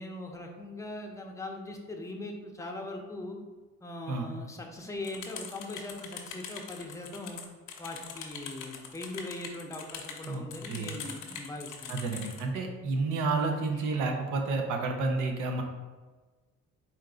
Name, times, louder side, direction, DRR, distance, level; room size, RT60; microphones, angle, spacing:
voice 1, 0.0-3.4 3.8-7.4 7.8-12.0 13.5-13.8, left 2 dB, 10° left, 1 dB, 0.6 m, -40 dB
sound 1, 5.0-12.4, left 6 dB, 90° left, 0.7 m, -43 dB
voice 2, 10.2-10.9 11.9-15.6, right 3 dB, 90° right, 3 dB, 0.7 m, -30 dB
4.4 x 2.6 x 3.8 m, 1.3 s
cardioid pair, 90°, 30 cm